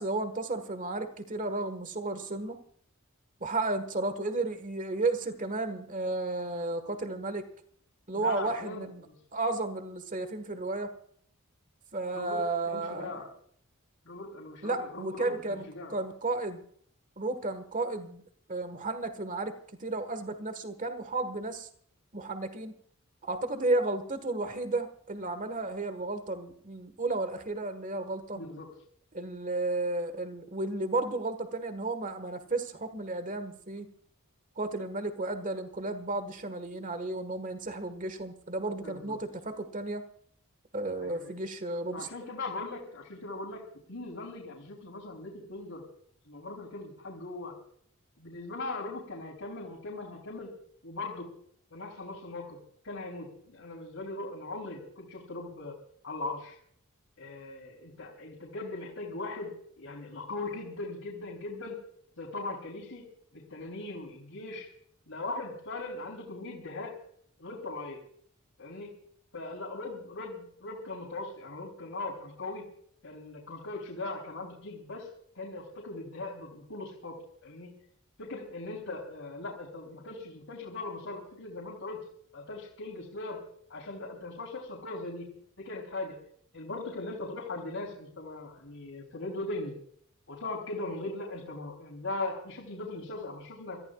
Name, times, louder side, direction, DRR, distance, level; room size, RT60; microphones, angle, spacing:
voice 1, 0.0-2.6 3.4-7.5 8.1-9.0 9.3-10.9 11.9-13.3 14.6-15.6 15.9-16.6 17.2-18.2 18.5-19.5 19.8-21.7 22.1-22.7 23.2-28.4 29.1-33.9 34.6-40.0 40.7-42.1, right 2 dB, 35° right, 10 dB, 1.6 m, -33 dB
voice 2, 8.1-9.2 12.1-13.3 14.0-16.0 28.3-28.8 38.8-39.2 41.0-41.3 41.9-45.8 46.3-47.6 48.2-50.5 50.8-51.3 51.7-55.8 56.0-56.6 57.2-61.8 62.2-63.1 63.3-64.7 65.1-67.0 67.4-68.0 68.6-69.0 69.3-72.7 73.0-75.1 75.3-77.7 78.2-82.1 82.3-83.4 83.7-85.3 85.6-86.2 86.5-89.7 90.3-93.8, left 2 dB, 70° left, -3 dB, 3.5 m, -39 dB
27.5 x 14.5 x 2.4 m, 0.63 s
head